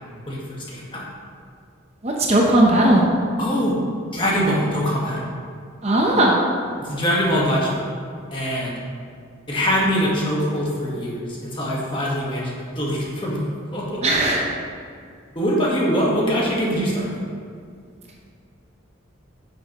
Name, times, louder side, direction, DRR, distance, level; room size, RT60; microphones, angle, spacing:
voice 1, 0.3-1.0 3.4-3.8 4.1-5.2 6.8-7.8 8.3-8.7 9.5-13.4 13.7-14.0 15.3-17.2, equal, 25° left, -4 dB, 1.5 m, -23 dB
voice 2, 2.0-3.0 5.8-6.4 14.0-14.4, right 1 dB, 30° right, -2 dB, 0.8 m, -17 dB
10.5 x 6.4 x 3.1 m, 2.2 s
head